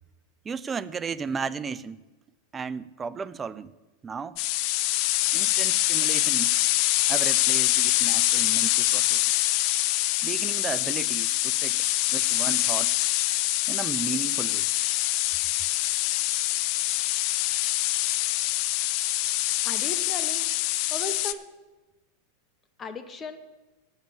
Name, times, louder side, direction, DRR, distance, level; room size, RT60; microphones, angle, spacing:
voice 1, 0.4-2.0 2.5-3.7 4.0-4.4 5.3-6.6 7.1-9.2 10.2-13.1 13.7-14.7, right 5 dB, 20° right, 0.5 m, -34 dB
sound 1, 4.4-21.3, left 16 dB, 55° left, 0.5 m, -25 dB
voice 2, 19.6-20.4 20.9-21.4 22.8-23.4, left 4 dB, 25° left, 1.0 m, -36 dB
8.5 x 8.1 x 7.4 m
hypercardioid pair, 100°, 0 cm